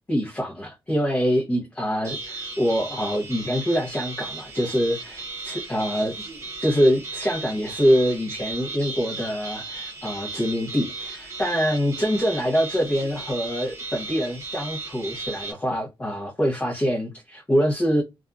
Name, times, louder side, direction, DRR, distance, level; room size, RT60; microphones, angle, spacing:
voice 1, 0.1-6.1 6.6-18.0, equal, 15° left, 0.8 m, -24 dB
sound 1, 2.0-15.5, right 3 dB, 30° right, 0.9 m, -36 dB
2.6 x 2.3 x 2.3 m
wide cardioid pair, 130°, 9 cm